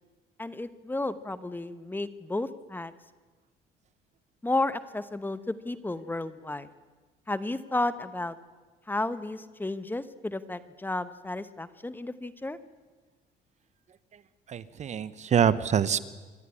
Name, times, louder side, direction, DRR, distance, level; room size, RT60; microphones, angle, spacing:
voice 1, 0.4-2.9 4.4-6.7 7.3-8.4 8.9-12.6, left 2 dB, 10° left, 13 dB, 0.9 m, -32 dB
voice 2, 14.5-16.0, right 8 dB, 45° right, 16 dB, 0.9 m, -25 dB
26.0 x 12.0 x 9.9 m, 1.3 s
cardioid pair, 110°, 17 cm